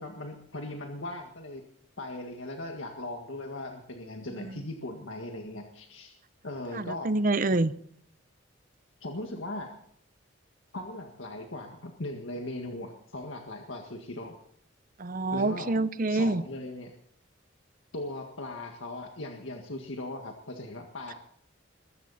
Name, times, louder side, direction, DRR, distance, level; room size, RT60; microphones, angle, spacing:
voice 1, 0.0-1.6 2.0-6.1 6.4-7.1 9.0-9.7 10.7-14.4 15.3-15.8 16.1-16.9 17.9-21.1, left 2 dB, 75° left, 3 dB, 1.8 m, -38 dB
voice 2, 6.9-7.7 15.0-16.4, right 2 dB, 40° right, 14 dB, 0.7 m, -26 dB
22.0 x 15.0 x 4.2 m, 0.65 s
head